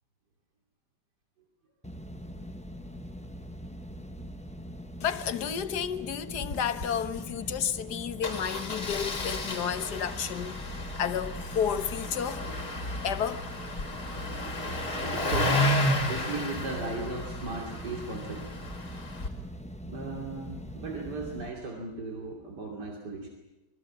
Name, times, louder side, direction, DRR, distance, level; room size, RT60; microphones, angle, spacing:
sound 1, 1.8-21.5, equal, 5° left, 0.8 m, -42 dB
voice 1, 5.0-10.6 11.0-12.4 13.0-13.5, left 8 dB, 75° left, 1.7 m, -31 dB
Engine starting, 6.3-6.6 6.8-6.9 7.2-7.3 8.2-19.3, left 1 dB, 50° left, 2.9 m, -32 dB
voice 2, 15.0-15.6 15.9-18.4 19.8-23.3, right 3 dB, 85° right, 3.5 m, -36 dB
25.5 x 22.0 x 7.4 m
omnidirectional pair, 1.8 m